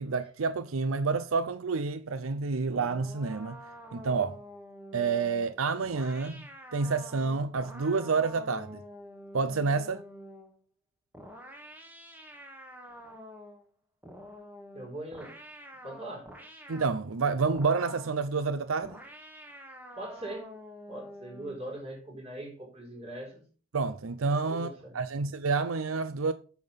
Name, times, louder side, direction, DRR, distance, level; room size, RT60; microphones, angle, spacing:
voice 1, 0.0-3.6 3.9-4.4 4.9-6.4 6.7-8.8 9.3-10.0 16.7-19.0 23.7-26.3, right 4 dB, 85° right, 0.6 m, -29 dB
sound 1, 2.7-10.6 11.1-13.7 14.0-17.0 17.5-18.2 18.8-21.7, equal, 10° right, 1.6 m, -48 dB
voice 2, 14.7-15.4 15.8-16.3 19.7-20.5 20.9-23.4 24.3-25.0, right 1 dB, 30° right, 4.5 m, -41 dB
8.7 x 6.2 x 5.3 m
head